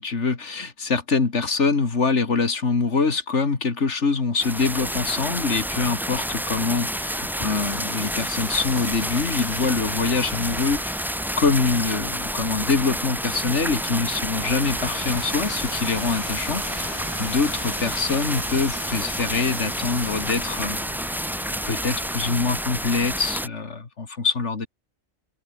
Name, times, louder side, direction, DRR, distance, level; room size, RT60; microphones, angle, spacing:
voice 1, 0.0-20.8 21.6-24.7, left 4 dB, 70° left, 2.7 m, -24 dB
sound 1, 4.4-23.5, equal, ahead, 0.6 m, -29 dB
sound 2, 7.5-22.9, left 1 dB, 20° left, 4.2 m, -39 dB
open air
omnidirectional pair, 1.2 m